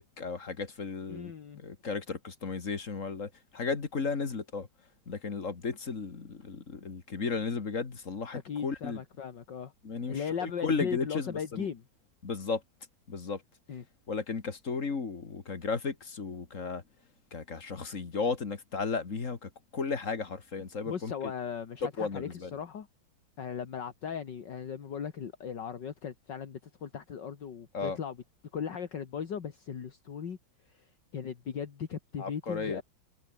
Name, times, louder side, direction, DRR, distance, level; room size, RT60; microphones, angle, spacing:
voice 1, 0.0-4.7 5.1-9.0 9.8-11.7 12.2-12.6 13.1-13.4 14.1-16.8 17.3-21.1 21.8-22.6 27.7-28.0 32.2-32.8, left 4 dB, 40° left, 2.3 m, -34 dB
voice 2, 1.1-1.6 8.5-9.7 10.1-11.8 13.7-13.8 20.8-22.9 23.4-28.2 28.5-30.4 31.1-32.8, left 7 dB, 60° left, 2.4 m, -37 dB
omnidirectional pair, 2.3 m